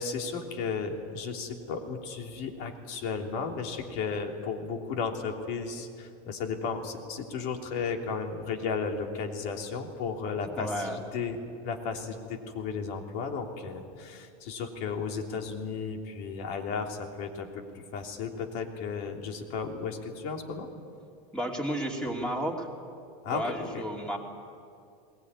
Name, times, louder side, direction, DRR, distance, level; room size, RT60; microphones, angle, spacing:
voice 1, 0.0-11.4 11.6-17.6 17.9-20.7 23.2-23.8, left 5 dB, 50° left, 3 dB, 3.1 m, -34 dB
voice 2, 10.6-11.0 21.3-22.7 23.3-24.2, equal, 5° left, 0 dB, 3.0 m, -32 dB
21.5 x 19.5 x 9.7 m, 2.4 s
supercardioid pair, 145°, 19 cm